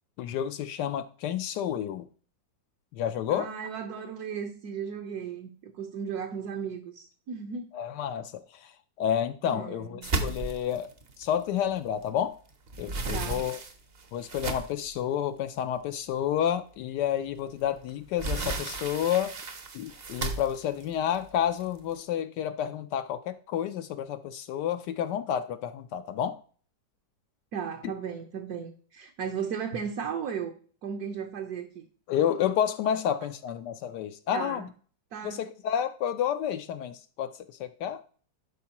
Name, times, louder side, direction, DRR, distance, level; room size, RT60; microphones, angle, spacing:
voice 1, 0.2-2.1 2.9-3.5 7.7-8.7 9.0-10.9 11.2-12.4 12.8-13.6 14.1-19.3 19.7-26.4 32.1-34.7 35.2-37.3 37.6-38.0, left 9 dB, 75° left, 1.1 m, -30 dB
voice 2, 3.3-7.7 9.5-10.1 13.1-13.4 27.5-30.6 30.8-31.8 34.3-34.7 35.1-35.5, right 7 dB, 65° right, 1.2 m, -35 dB
sound 1, 10.0-12.2 12.5-14.9 15.6-15.7 16.1-16.2 17.6-21.9, right 3 dB, 45° right, 0.8 m, -34 dB
11.5 x 4.6 x 2.9 m
omnidirectional pair, 2.0 m